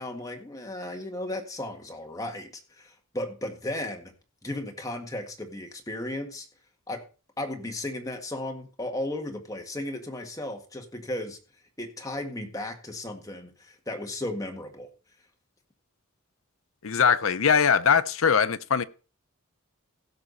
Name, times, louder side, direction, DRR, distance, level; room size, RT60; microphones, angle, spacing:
voice 1, 0.0-4.1 4.4-6.5 6.9-7.0 7.4-11.4 11.8-14.9, left 1 dB, 15° left, 1.8 m, -35 dB
voice 2, 16.8-18.8, left 6 dB, 70° left, 0.7 m, -21 dB
16.0 x 6.1 x 4.1 m
head